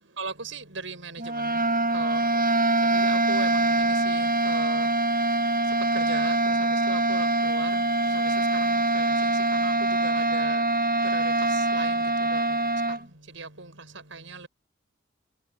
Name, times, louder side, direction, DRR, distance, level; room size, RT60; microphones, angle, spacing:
voice 1, 0.2-1.6 1.9-2.2 2.9-4.9 5.9-6.6 6.9-7.8 8.1-9.1 9.5-9.7 10.0-10.6 11.1-12.4 13.3-13.7 14.1-14.5, right 4 dB, 80° right, 6.5 m, -38 dB
sound 1, 1.2-13.0, right 2 dB, 45° right, 1.6 m, -24 dB
head